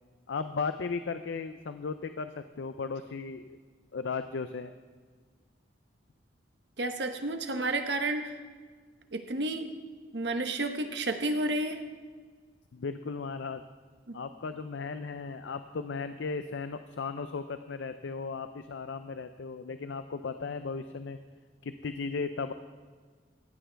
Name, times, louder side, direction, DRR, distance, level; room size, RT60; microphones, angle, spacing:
voice 1, 0.3-3.6 3.9-4.7 12.7-13.6 14.1-21.2 21.6-22.5, left 4 dB, 80° left, 10 dB, 0.5 m, -36 dB
voice 2, 6.8-8.3 9.1-9.7 10.1-11.8 14.1-14.2, right 2 dB, 65° right, 6 dB, 1.0 m, -31 dB
15.5 x 9.0 x 4.5 m, 1.5 s
head